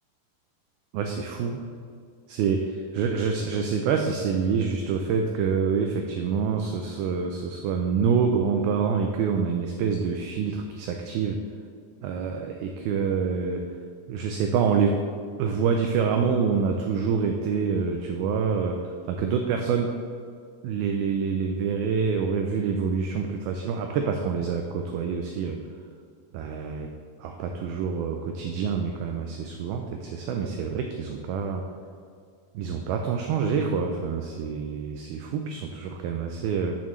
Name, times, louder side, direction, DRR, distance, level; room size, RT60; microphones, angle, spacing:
voice 1, 0.9-1.6 2.3-11.4 12.0-13.6 14.1-15.0 15.4-19.9 20.6-25.6 26.3-26.9 27.2-31.6 32.5-36.8, right 6 dB, 90° right, 3 dB, 2.1 m, -26 dB
12.5 x 6.2 x 3.1 m, 2.2 s
omnidirectional pair, 4.9 m